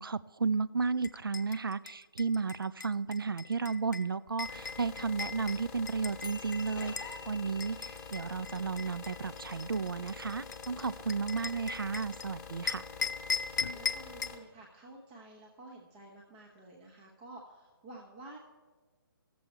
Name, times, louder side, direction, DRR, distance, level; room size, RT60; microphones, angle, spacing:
voice 1, 0.0-6.9 7.3-12.8, right 5 dB, 70° right, 16 dB, 0.4 m, -33 dB
sound 1, 1.0-7.2 7.6-12.3 12.7-14.4, left 5 dB, 50° left, 0.5 m, -39 dB
sound 2, 4.4-14.4, left 5 dB, 10° left, 1.4 m, -46 dB
sound 3, 6.2-12.8, left 2 dB, 80° left, 0.7 m, -53 dB
voice 2, 12.8-13.4 13.7-18.4, right 2 dB, 20° right, -2 dB, 1.0 m, -51 dB
15.5 x 7.0 x 4.4 m, 1.4 s
figure-of-eight pair, 140°, 12 cm